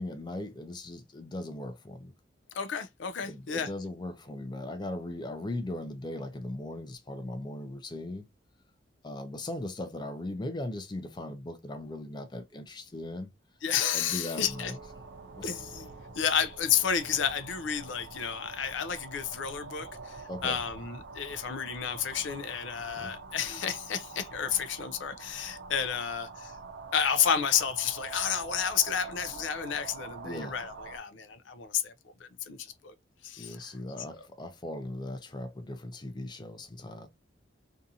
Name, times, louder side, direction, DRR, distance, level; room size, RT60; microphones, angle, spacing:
voice 1, 0.0-2.1 3.3-8.3 9.0-13.3 13.9-14.8 15.4-15.5 20.3-20.6 22.9-23.1 30.2-30.6 33.4-37.1, left 1 dB, 25° left, 0.5 m, -38 dB
voice 2, 2.5-3.7 13.6-14.7 15.4-26.5 26.9-31.9 32.2-32.9 33.2-33.6, left 8 dB, 80° left, 0.4 m, -31 dB
Chink clink, 14.0-19.2, right 5 dB, ahead, 0.8 m, -57 dB
sound 1, 14.3-31.0, right 4 dB, 85° right, 0.6 m, -45 dB
2.7 x 2.4 x 2.6 m
head